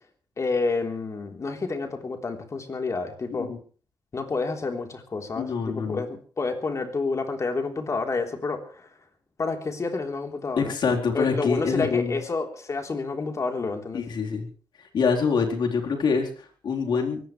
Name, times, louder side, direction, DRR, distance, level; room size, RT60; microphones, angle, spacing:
voice 1, 0.4-3.5 4.1-8.9 9.4-10.7 11.1-14.0, left 3 dB, 40° left, 4 dB, 3.7 m, -29 dB
voice 2, 5.4-6.0 10.6-12.2 13.9-14.5 14.9-17.2, left 5 dB, 70° left, 1 dB, 4.1 m, -25 dB
23.0 x 18.0 x 3.3 m, 0.41 s
cardioid pair, 100°, 8 cm